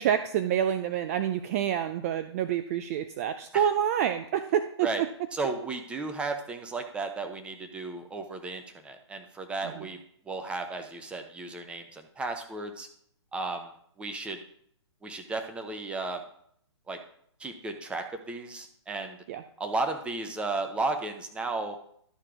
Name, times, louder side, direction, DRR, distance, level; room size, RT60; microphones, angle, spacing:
voice 1, 0.0-4.9 9.8-9.9 19.3-19.4, right 9 dB, 30° right, 10 dB, 0.4 m, -27 dB
voice 2, 5.3-10.0 10.3-12.9 13.3-13.7 14.0-14.4 15.0-16.2 16.9-17.0 17.4-19.2 19.6-21.8, right 3 dB, 5° right, 6 dB, 0.8 m, -34 dB
12.5 x 4.4 x 5.0 m, 0.66 s
hypercardioid pair, 140°, 15 cm